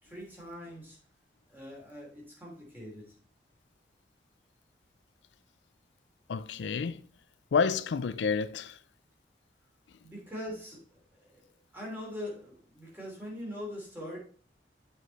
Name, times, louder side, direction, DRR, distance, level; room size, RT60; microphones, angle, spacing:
voice 1, 0.0-1.0 1.5-3.2 10.0-14.2, left 1 dB, 10° right, 3.0 m, -42 dB
voice 2, 6.3-7.1 7.5-8.8, left 5 dB, 85° left, 0.4 m, -29 dB
7.8 x 5.5 x 4.1 m
head